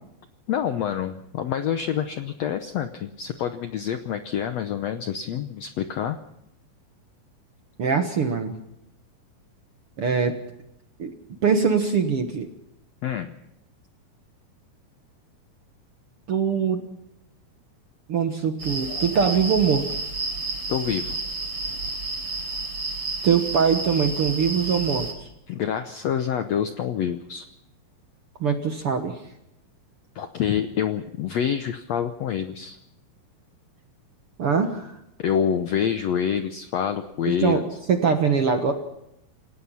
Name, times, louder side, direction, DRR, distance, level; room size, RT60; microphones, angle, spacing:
voice 1, 0.5-6.2 13.0-13.3 20.7-21.2 25.5-27.5 30.1-32.8 35.2-37.6, left 8 dB, 75° left, 8 dB, 1.6 m, -27 dB
voice 2, 7.8-8.5 10.0-10.4 11.0-11.1 11.4-12.5 16.3-16.8 18.1-19.9 23.2-25.1 28.4-29.2 34.4-34.9 37.3-37.6 37.9-38.7, right 6 dB, 55° right, 6 dB, 1.7 m, -22 dB
sound 1, 18.6-25.1, right 3 dB, 40° right, 4.6 m, -31 dB
28.0 x 17.0 x 5.7 m, 0.80 s
omnidirectional pair, 4.2 m